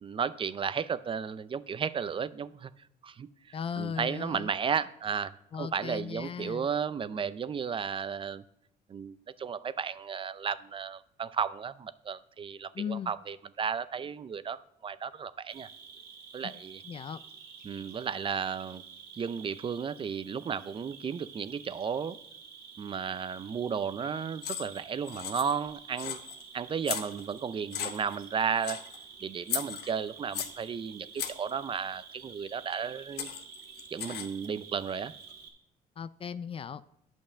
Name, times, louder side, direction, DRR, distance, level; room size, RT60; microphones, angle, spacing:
voice 1, 0.0-2.7 3.0-5.3 5.6-8.4 8.9-15.7 16.3-16.8 17.6-18.8 19.2-22.2 22.8-26.2 26.5-28.8 29.2-33.3 33.9-35.1, right 6 dB, 30° right, 15 dB, 0.5 m, -34 dB
voice 2, 3.5-4.5 5.5-6.7 12.7-13.1 16.4-16.6 16.8-17.2 36.0-36.8, left 7 dB, 35° left, 16 dB, 0.4 m, -37 dB
Cricket, 15.5-35.5, right 6 dB, 70° right, 1.9 m, -50 dB
sound 1, 24.4-24.8 25.1-25.7 26.0-26.4 26.8-27.4 27.7-28.2 28.6-29.0 29.5-30.6 31.2-31.5 32.7-32.8 33.2-34.5, left 9 dB, 70° left, 1.0 m, -36 dB
9.0 x 5.3 x 6.9 m, 0.77 s
cardioid pair, 110°, 17 cm